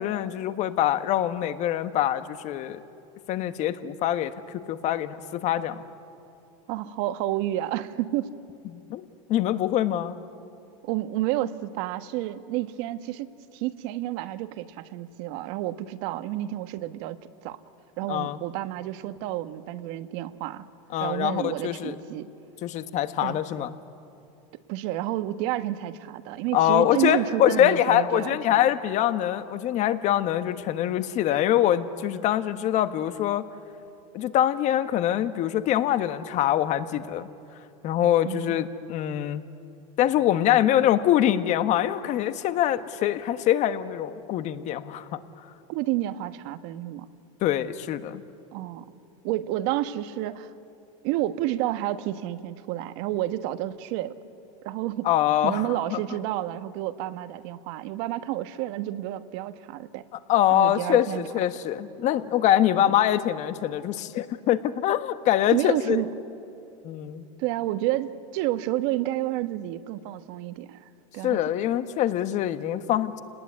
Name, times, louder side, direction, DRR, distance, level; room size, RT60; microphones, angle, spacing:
voice 1, 0.0-2.8 3.3-5.8 8.7-10.2 18.1-18.4 20.9-21.9 22.6-23.7 26.5-33.5 34.1-37.3 37.8-39.4 40.0-45.2 47.4-48.2 55.0-56.0 60.3-66.0 66.8-67.2 71.2-73.2, left 12 dB, 45° left, 10 dB, 1.4 m, -24 dB
voice 2, 6.7-8.3 10.8-13.3 13.5-17.2 17.4-17.6 18.0-20.7 21.0-22.3 23.2-23.4 24.7-28.6 38.2-38.6 45.7-47.1 48.5-48.9 49.2-50.5 51.0-54.1 54.6-55.1 55.4-60.0 60.5-61.2 62.7-62.9 65.5-66.1 67.4-71.4, right 14 dB, 60° right, 11 dB, 1.4 m, -30 dB
29.5 x 19.5 x 9.7 m, 2.7 s
supercardioid pair, 125°, 17 cm